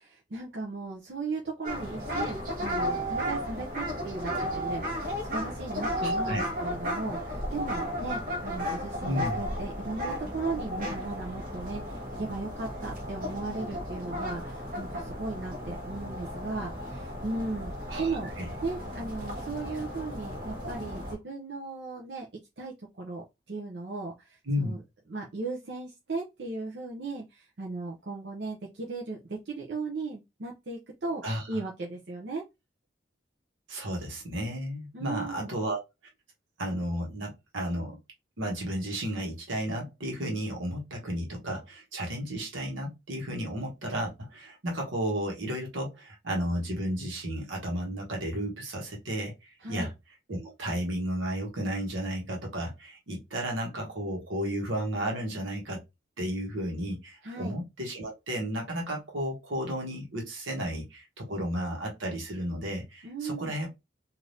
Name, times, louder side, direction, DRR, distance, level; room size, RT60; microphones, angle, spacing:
voice 1, 0.0-17.7 18.0-18.3 18.6-22.3 22.6-24.8 25.1-32.4 34.9-35.5 49.6-49.9 57.2-57.5 63.0-63.6, right 3 dB, 60° right, 0.6 m, -37 dB
city pond ducks yell, 1.6-21.1, equal, 45° right, 1.0 m, -34 dB
voice 2, 6.0-6.5 9.0-9.4 17.9-18.5 24.5-24.8 31.2-31.4 33.7-35.8 36.6-38.0 38.4-49.9 50.3-55.8 56.2-63.7, equal, 85° right, 1.2 m, -33 dB
3.3 x 2.6 x 2.6 m
head